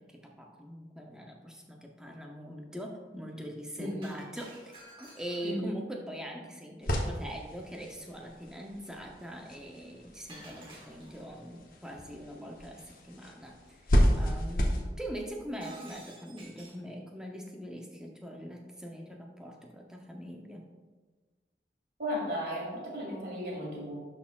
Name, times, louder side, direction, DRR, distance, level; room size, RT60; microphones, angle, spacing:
voice 1, 0.0-20.7, equal, 5° right, 0 dB, 0.6 m, -42 dB
voice 2, 3.8-4.2 5.4-5.8 22.0-23.9, equal, 55° right, -3 dB, 1.7 m, -35 dB
Shatter, 4.0-5.7 10.3-11.3 15.6-16.9, right 1 dB, 30° right, 1.3 m, -52 dB
sound 1, 6.8-14.8, equal, 50° left, 0.8 m, -32 dB
11.5 x 4.2 x 2.3 m, 1.3 s
head